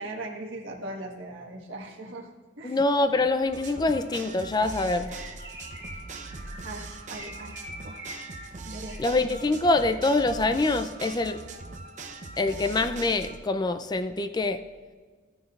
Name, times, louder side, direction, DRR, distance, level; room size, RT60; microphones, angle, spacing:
voice 1, 0.0-2.3 2.6-2.8 6.6-8.0 8.6-9.0, right 2 dB, 65° right, 0 dB, 1.5 m, -39 dB
voice 2, 2.6-5.2 9.0-11.4 12.4-14.6, left 2 dB, 20° left, 9 dB, 0.3 m, -25 dB
sound 1, 3.5-13.4, right 3 dB, 35° right, 0.6 m, -41 dB
Bird, 4.6-9.5, equal, 15° right, 2.8 m, -45 dB
14.0 x 9.4 x 2.4 m, 1.5 s
head